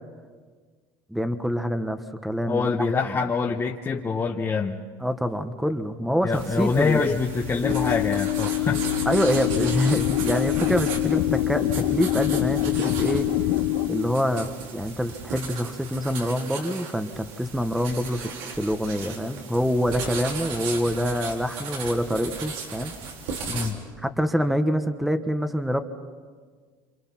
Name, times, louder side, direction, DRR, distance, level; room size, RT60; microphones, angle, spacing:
voice 1, 1.1-2.7 3.1-3.2 5.0-7.0 9.1-13.3 13.9-14.5 14.7-23.0 24.0-25.8, equal, ahead, 8 dB, 1.2 m, -26 dB
voice 2, 2.5-4.8 6.2-8.9 23.5-23.9, left 5 dB, 25° left, 0 dB, 1.2 m, -25 dB
sound 1, 6.3-23.7, right 4 dB, 90° right, 4.1 m, -36 dB
sound 2, 7.6-13.9, left 14 dB, 90° left, 2.2 m, -25 dB
28.0 x 27.5 x 5.9 m, 1.6 s
cardioid pair, 120°, 10 cm